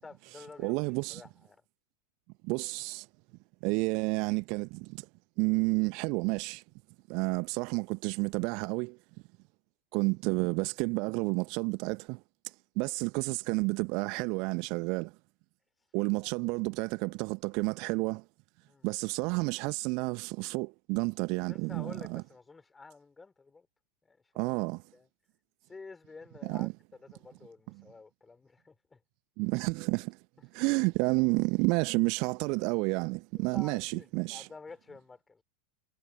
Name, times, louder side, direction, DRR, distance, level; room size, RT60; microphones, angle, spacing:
voice 1, 0.0-0.8 1.1-1.6 16.2-16.5 18.6-18.9 21.5-23.7 24.0-24.2 24.4-24.5 24.9-25.1 25.7-26.7 27.0-29.0 33.4-35.4, left 4 dB, 10° left, 4.1 m, -50 dB
voice 2, 0.6-1.2 2.4-3.1 3.6-5.1 5.4-6.6 7.1-9.0 9.9-12.2 12.8-15.1 15.9-18.2 18.8-22.2 24.3-24.8 26.4-26.7 29.4-30.2 30.5-34.5, right 30 dB, 45° right, 1.1 m, -30 dB
figure-of-eight pair, 90°, 0 cm